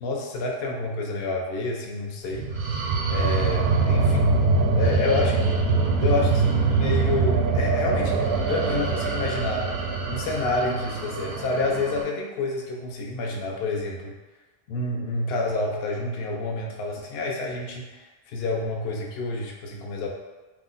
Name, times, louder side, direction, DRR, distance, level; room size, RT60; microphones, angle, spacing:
voice 1, 0.0-2.5 3.1-4.4 4.7-5.5 6.0-8.2 8.5-9.7 10.1-14.1 14.7-20.1, left 3 dB, 65° left, -1 dB, 0.6 m, -28 dB
sound 1, 2.3-12.0, right 4 dB, 85° right, 1.1 m, -23 dB
2.8 x 2.0 x 3.7 m, 1.2 s
omnidirectional pair, 1.5 m